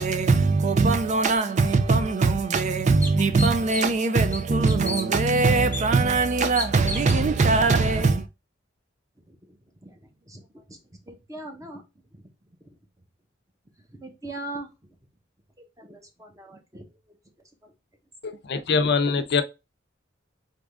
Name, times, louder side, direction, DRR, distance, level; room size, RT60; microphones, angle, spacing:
voice 1, 0.0-8.3, right 3 dB, 40° right, 0.4 m, -21 dB
sound 1, 2.0-2.1 2.6-2.7 3.0-4.0 4.3-5.0 5.7-5.8 6.6-7.2, left 2 dB, 10° left, 0.9 m, -32 dB
voice 2, 9.3-11.9 12.1-12.2 12.6-12.7 13.9-14.7 15.6-17.1 17.6-17.7, right 2 dB, 20° right, 1.0 m, -42 dB
voice 3, 18.2-19.4, left 5 dB, 60° left, 0.6 m, -23 dB
4.0 x 3.7 x 3.5 m
head